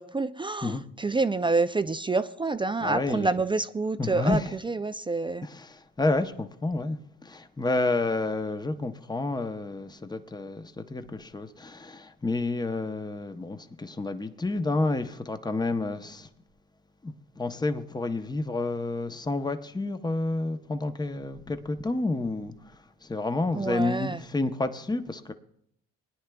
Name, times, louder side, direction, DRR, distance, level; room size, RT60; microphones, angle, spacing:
voice 1, 0.0-5.5 23.5-24.2, right 3 dB, 15° right, 0.4 m, -28 dB
voice 2, 2.8-3.3 4.0-4.6 5.4-16.3 17.0-25.3, left 2 dB, 15° left, 0.8 m, -30 dB
20.5 x 10.0 x 2.3 m
cardioid pair, 90°, 30 cm